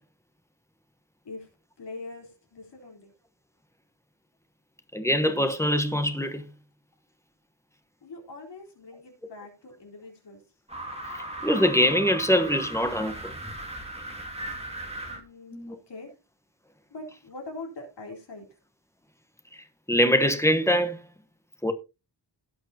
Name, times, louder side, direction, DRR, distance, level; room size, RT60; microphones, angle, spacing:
voice 1, 1.8-3.1 8.0-10.4 15.1-16.1 16.9-18.5, left 2 dB, 65° left, 3.9 m, -43 dB
voice 2, 4.9-6.5 11.4-13.3 15.5-15.8 19.6-21.0 21.6-21.7, equal, 5° left, 1.1 m, -23 dB
sound 1, 10.7-15.2, right 1 dB, 15° right, 2.3 m, -37 dB
17.0 x 6.3 x 2.9 m
wide cardioid pair, 165°, 44 cm